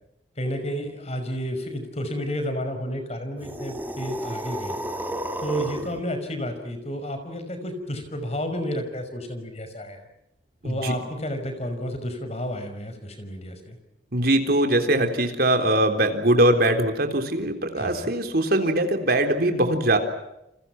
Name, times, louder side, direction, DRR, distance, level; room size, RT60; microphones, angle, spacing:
voice 1, 0.4-4.8 5.4-10.0 10.6-13.8 17.8-18.1, equal, 35° left, 8 dB, 5.6 m, -31 dB
sound 1, 3.4-6.0, equal, 10° right, 2.4 m, -32 dB
voice 2, 10.6-10.9 14.1-20.0, right 1 dB, 60° right, 6 dB, 3.7 m, -21 dB
29.5 x 27.5 x 6.1 m, 0.85 s
head